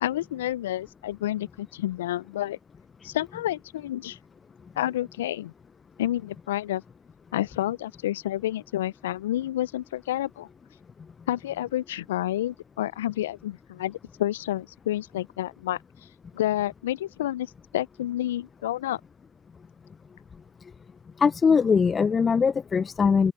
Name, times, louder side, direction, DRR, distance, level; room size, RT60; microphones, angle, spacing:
voice 1, 0.0-2.6 3.0-4.2 4.8-5.5 6.0-6.8 7.3-10.5 11.3-15.8 16.3-19.0, left 13 dB, 75° left, 0.7 m, -29 dB
voice 2, 21.2-23.3, left 5 dB, 30° left, 0.6 m, -21 dB
open air
figure-of-eight pair, 65°, 0 cm